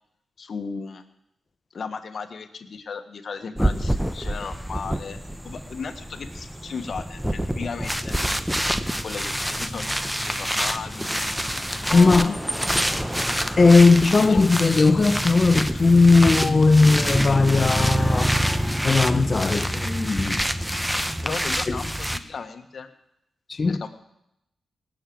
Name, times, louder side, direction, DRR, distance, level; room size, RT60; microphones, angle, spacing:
voice 1, 0.4-1.0 1.7-5.2 5.4-8.1 9.0-11.2 11.9-12.4 14.3-14.4 21.2-22.9 23.6-23.9, left 5 dB, 60° left, 1.4 m, -35 dB
sound 1, 3.6-22.2, equal, 5° right, 1.0 m, -26 dB
voice 2, 11.9-12.3 13.6-18.3 18.8-20.5 21.7-21.8 23.5-23.8, left 3 dB, 45° left, 0.9 m, -18 dB
18.0 x 6.6 x 7.8 m
supercardioid pair, 45°, 0 cm